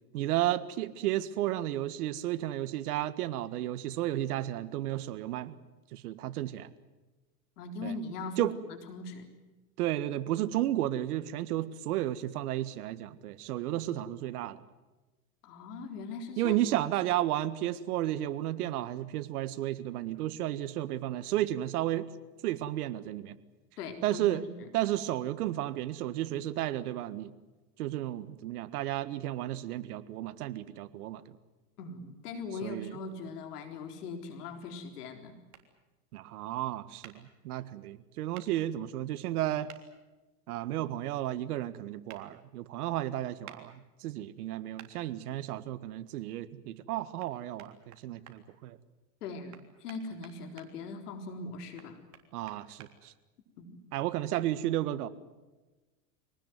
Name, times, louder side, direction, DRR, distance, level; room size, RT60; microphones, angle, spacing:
voice 1, 0.1-5.6 5.9-6.7 7.8-7.9 8.4-8.5 9.8-14.6 16.4-22.1 22.4-23.3 24.0-24.4 24.7-27.3 27.8-31.2 32.6-33.0 36.1-39.7 40.5-48.8 52.3-53.1 53.9-55.1, right 14 dB, 70° right, 13 dB, 1.8 m, -33 dB
voice 2, 7.6-9.3 15.4-16.5 23.8-24.7 31.8-35.4 49.2-52.0 53.6-53.8, left 3 dB, 80° left, 5 dB, 4.1 m, -40 dB
sound 1, 35.5-35.6 37.0-37.2 38.3-38.5 39.7-39.8 42.1-42.2 43.4-43.6 44.8-44.9 47.2-47.3 47.6-48.4 49.5-50.7 51.8-52.9, right 12 dB, 35° right, 3.5 m, -51 dB
25.5 x 19.0 x 9.4 m, 1.2 s
supercardioid pair, 125°, 46 cm